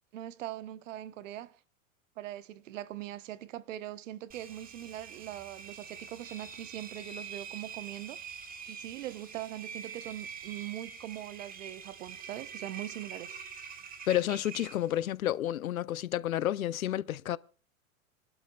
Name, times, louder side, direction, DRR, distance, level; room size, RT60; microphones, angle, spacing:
voice 1, 0.1-1.5 2.2-8.2 8.7-13.4, right 13 dB, 65° right, 0.9 m, -41 dB
Engine, 4.3-15.1, right 6 dB, 20° right, 1.4 m, -45 dB
voice 2, 14.1-17.4, left 12 dB, 80° left, 0.7 m, -30 dB
28.5 x 12.0 x 2.3 m
hypercardioid pair, 105°, 41 cm